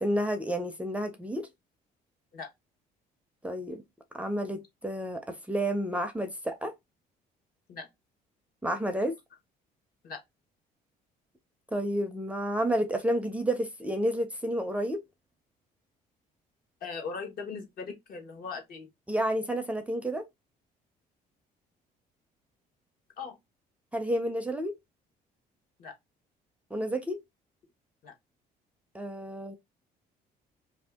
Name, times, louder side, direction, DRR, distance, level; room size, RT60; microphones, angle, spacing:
voice 1, 0.0-1.5 3.4-3.8 4.1-6.7 8.6-9.2 11.7-15.0 19.1-20.2 23.9-24.8 26.7-27.2 28.9-29.6, right 1 dB, 10° right, 0.5 m, -30 dB
voice 2, 16.8-18.9 23.2-23.4 25.8-25.9 28.0-28.1, left 5 dB, 60° left, 1.1 m, -39 dB
2.6 x 2.3 x 3.4 m
cardioid pair, 110°, 17 cm